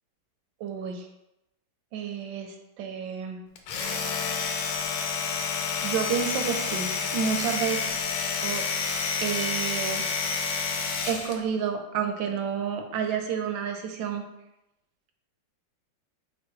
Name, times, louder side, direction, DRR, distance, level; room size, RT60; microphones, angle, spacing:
voice 1, 0.6-1.1 1.9-3.4 5.8-7.9 8.4-8.6 9.2-10.1 11.1-14.2, right 7 dB, 80° right, 4 dB, 1.3 m, -30 dB
Domestic sounds home sounds, 3.6-11.4, left 5 dB, 80° left, 1.3 m, -29 dB
4.7 x 2.2 x 4.5 m, 0.91 s
omnidirectional pair, 2.0 m